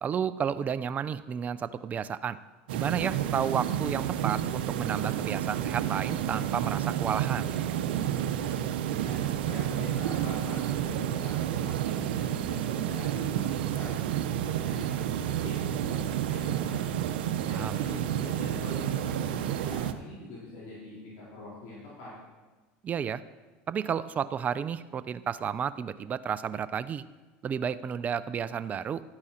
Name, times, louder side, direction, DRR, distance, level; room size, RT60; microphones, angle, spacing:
voice 1, 0.0-2.4 2.7-7.5 17.5-17.8 22.8-23.2 23.7-27.0 27.4-29.0, right 7 dB, 30° right, 14 dB, 0.4 m, -32 dB
sound 1, 2.7-19.9, right 10 dB, 85° right, 0.6 m, -30 dB
voice 2, 9.0-13.9 14.3-17.0 17.4-22.1, left 2 dB, 65° left, -8 dB, 4.1 m, -44 dB
12.0 x 8.8 x 4.3 m, 1.3 s
supercardioid pair, 105°, 5 cm